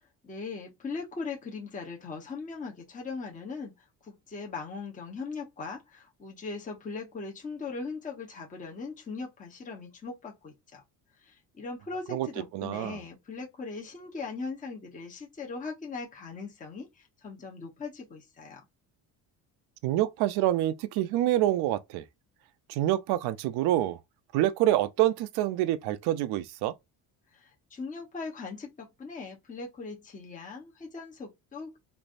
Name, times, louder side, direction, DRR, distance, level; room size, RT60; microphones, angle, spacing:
voice 1, 0.2-3.7 4.0-10.8 11.2-18.6 27.3-31.8, left 4 dB, 20° left, 0.9 m, -39 dB
voice 2, 12.5-13.0 19.8-22.0 22.7-24.0 24.3-26.7, right 14 dB, 70° right, 0.5 m, -26 dB
3.2 x 2.5 x 2.5 m
cardioid pair, 115°, 40 cm